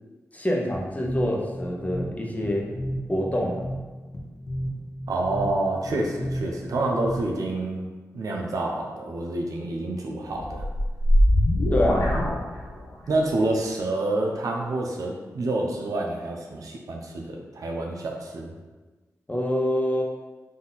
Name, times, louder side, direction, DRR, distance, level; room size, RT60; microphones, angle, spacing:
voice 1, 0.3-2.7 3.1-3.6 11.7-12.1 19.3-20.0, equal, 25° left, -1 dB, 0.8 m, -26 dB
sound 1, 0.7-7.6, equal, 55° left, 0.7 m, -34 dB
voice 2, 5.1-7.9 8.1-10.7 13.1-18.5, right 2 dB, 80° right, 0 dB, 0.6 m, -28 dB
sound 2, 10.4-13.1, equal, 85° left, 0.8 m, -22 dB
3.9 x 2.7 x 4.0 m, 1.3 s
cardioid pair, 55°, 6 cm